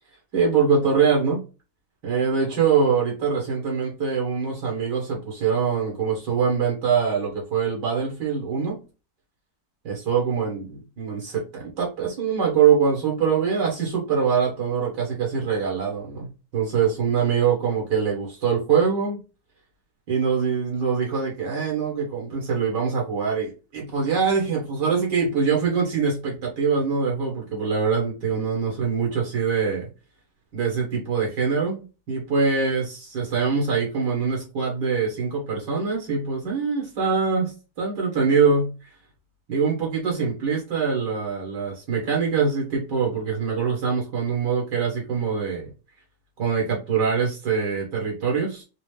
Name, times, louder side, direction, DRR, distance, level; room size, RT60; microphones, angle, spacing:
voice 1, 0.3-1.4 2.0-8.8 9.8-19.2 20.1-29.9 30.5-38.7 39.5-45.7 46.4-48.6, right 6 dB, 75° right, -2 dB, 2.0 m, -23 dB
5.0 x 2.0 x 3.2 m, 0.31 s
omnidirectional pair, 1.9 m